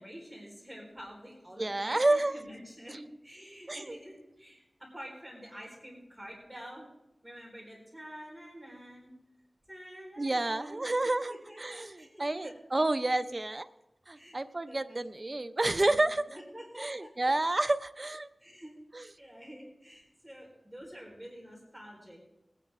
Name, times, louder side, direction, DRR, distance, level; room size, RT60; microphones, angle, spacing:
voice 1, 0.0-6.9 7.2-9.1 9.7-10.9 11.3-13.3 14.1-14.4 14.7-15.4 15.7-17.1 18.4-22.2, equal, 5° right, -3 dB, 4.3 m, -48 dB
voice 2, 1.6-2.4 2.9-3.0 3.7-4.0 10.2-13.7 14.1-16.2 16.8-18.3 18.9-19.0, right 2 dB, 40° right, 10 dB, 0.6 m, -30 dB
20.5 x 9.8 x 3.6 m, 0.92 s
wide cardioid pair, 75°, 0 cm